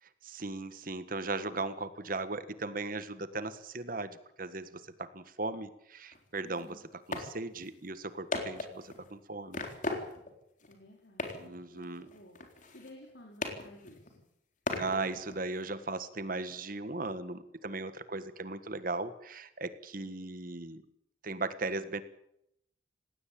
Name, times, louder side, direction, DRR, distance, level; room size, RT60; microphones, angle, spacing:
voice 1, 0.0-6.8 7.1-9.6 11.4-12.1 14.7-20.8 21.2-22.0, right 3 dB, 50° right, 13 dB, 1.6 m, -37 dB
sound 1, 6.1-6.2 6.6-6.7 7.1-7.3 7.6-7.7 8.3-9.1 9.5-10.4 10.6-10.7 11.2-11.6 11.8-13.1 13.4-14.2 14.7-15.6, left 2 dB, 45° left, 3.9 m, -37 dB
voice 2, 6.4-6.8 10.6-14.2 20.0-20.3, left 1 dB, 70° left, 0 dB, 4.6 m, -55 dB
19.0 x 18.0 x 8.7 m, 0.76 s
head